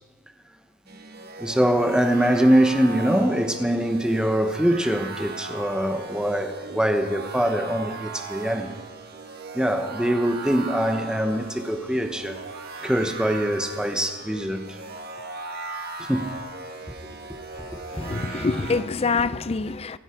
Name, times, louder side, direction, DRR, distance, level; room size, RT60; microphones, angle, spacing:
sound 1, 0.9-18.8, right 3 dB, 50° right, 1.5 m, -38 dB
voice 1, 1.4-8.7 9.5-12.4 12.8-14.8 16.0-16.3 16.9-17.0 17.6-18.5, equal, 5° right, 1.1 m, -23 dB
voice 2, 17.9-20.0, left 4 dB, 30° left, 0.5 m, -25 dB
26.0 x 9.0 x 4.5 m
head